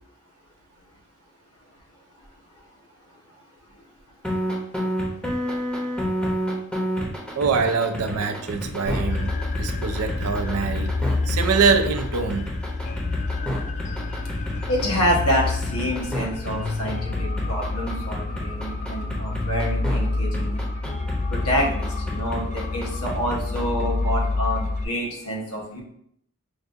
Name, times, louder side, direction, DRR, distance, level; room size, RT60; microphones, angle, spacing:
sound 1, 4.2-20.0 20.3-23.8, equal, 5° left, 0.7 m, -30 dB
voice 1, 7.4-11.0 11.3-12.5, right 5 dB, 85° right, 8 dB, 0.4 m, -24 dB
sound 2, 8.8-24.8, left 3 dB, 35° left, 0.3 m, -28 dB
voice 2, 14.7-20.6 21.3-25.8, equal, 80° left, -2 dB, 1.0 m, -27 dB
5.3 x 2.4 x 2.5 m, 0.72 s
head